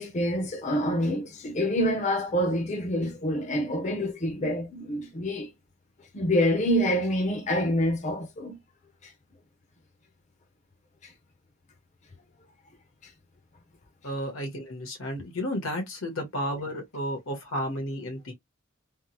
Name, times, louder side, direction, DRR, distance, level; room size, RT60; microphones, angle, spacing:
voice 1, 0.0-5.5 6.1-8.6 11.0-11.1, equal, 35° left, 0.6 m, -27 dB
voice 2, 14.0-18.3, equal, 85° left, 1.4 m, -32 dB
3.5 x 2.0 x 2.8 m
head